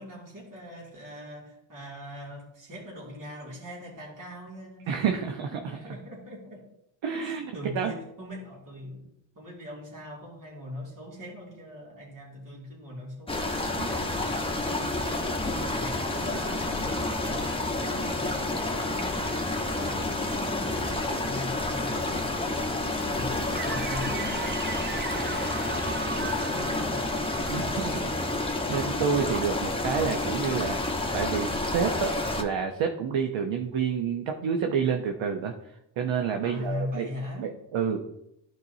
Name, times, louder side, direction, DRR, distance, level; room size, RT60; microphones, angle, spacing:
voice 1, 0.0-4.9 5.5-6.6 7.2-9.1 9.3-14.3 14.6-24.9 25.2-28.0 36.4-37.6, left 1 dB, 40° right, -4 dB, 2.7 m, -41 dB
voice 2, 4.9-5.6 7.0-7.9 27.5-27.9 28.4-30.8 31.1-37.1 37.4-38.0, right 6 dB, 75° right, 5 dB, 0.9 m, -29 dB
sound 1, 13.3-32.4, left 2 dB, 10° left, 1.2 m, -29 dB
sound 2, 23.5-28.6, right 5 dB, 25° right, 0.6 m, -37 dB
12.0 x 4.7 x 2.7 m, 0.82 s
cardioid pair, 70°, 47 cm